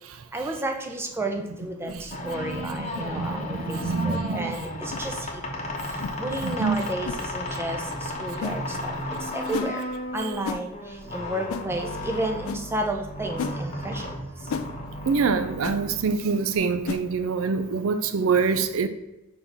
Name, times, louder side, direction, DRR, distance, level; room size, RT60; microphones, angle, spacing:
voice 1, 0.3-5.4 5.9-9.8 10.1-14.5, right 1 dB, 10° right, 3 dB, 0.6 m, -32 dB
voice 2, 1.8-4.6 6.4-6.8 10.2-10.3 15.0-18.9, right 5 dB, 65° right, 10 dB, 0.5 m, -26 dB
sound 1, 1.9-2.0 2.9-3.1 3.8-4.0 4.9-5.0 6.0-6.2 7.0-7.2 8.4-8.6 9.5-9.7 10.4-10.6 11.5-11.7 12.5-12.6 13.4-13.6 14.5-14.7 15.6-15.8 16.8-17.1, left 5 dB, 65° left, 0.4 m, -32 dB
sound 2, 2.0-16.6, left 1 dB, 30° left, 0.9 m, -34 dB
5.5 x 4.4 x 4.5 m, 0.96 s
head